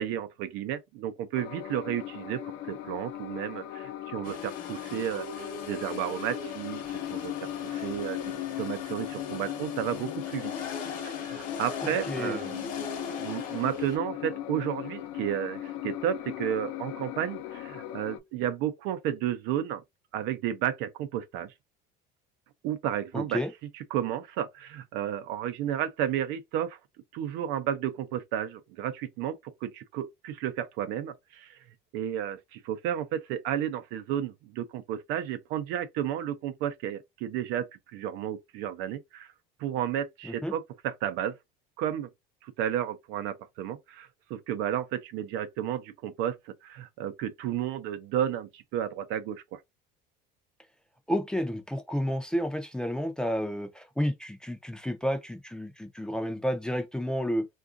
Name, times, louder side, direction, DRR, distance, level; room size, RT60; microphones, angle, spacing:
voice 1, 0.0-2.4 2.7-10.5 11.0-19.8 20.1-21.5 22.6-23.4 23.7-26.8 27.1-31.6 31.9-37.7 37.9-39.3 39.6-41.4 41.8-42.1 42.4-49.6, right 10 dB, 75° right, 0.6 m, -32 dB
sound 1, 1.3-18.2, left 13 dB, 70° left, 0.5 m, -38 dB
sound 2, 4.2-14.0, left 4 dB, 45° left, 0.9 m, -41 dB
voice 2, 11.8-12.5 23.1-23.5 40.2-40.5 51.1-57.5, equal, 5° left, 0.4 m, -31 dB
3.5 x 2.4 x 2.4 m
cardioid pair, 130°, 20 cm